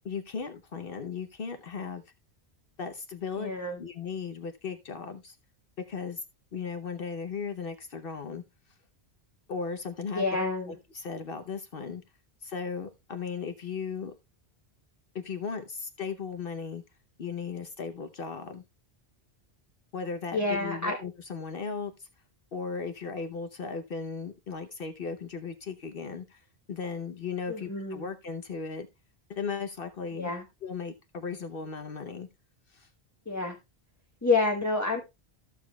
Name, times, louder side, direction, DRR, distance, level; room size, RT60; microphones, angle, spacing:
voice 1, 0.0-2.0 2.8-3.5 3.8-5.4 5.9-6.2 6.5-8.4 9.5-10.2 10.7-12.0 12.4-14.1 15.1-16.8 17.2-18.6 19.9-22.1 22.5-28.9 29.3-30.3 30.6-32.3 32.7-32.9, left 5 dB, 60° left, 1.0 m, -36 dB
voice 2, 3.4-3.8 10.1-10.7 20.3-21.0 27.5-28.1 30.1-30.4 33.3-33.6 34.2-35.0, left 3 dB, 15° left, 1.1 m, -28 dB
14.0 x 6.8 x 2.3 m
omnidirectional pair, 1.1 m